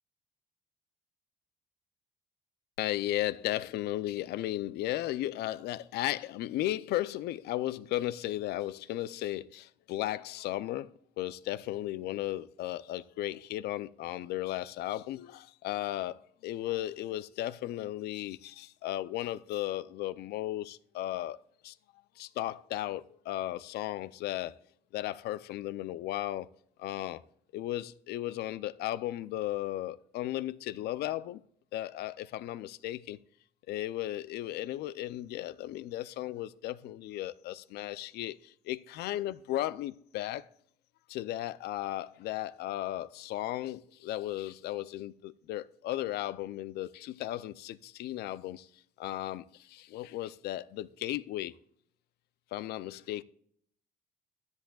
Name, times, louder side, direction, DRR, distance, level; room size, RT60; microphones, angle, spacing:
voice 1, 2.8-10.9 11.2-21.4 21.6-21.8 22.2-24.6 24.9-26.5 26.8-27.2 27.5-31.4 31.7-33.2 33.7-40.5 41.1-48.7 49.0-51.6 52.5-53.2, left 14 dB, 75° left, 0.5 m, -35 dB
10.5 x 10.5 x 2.3 m
cardioid pair, 110°, 17 cm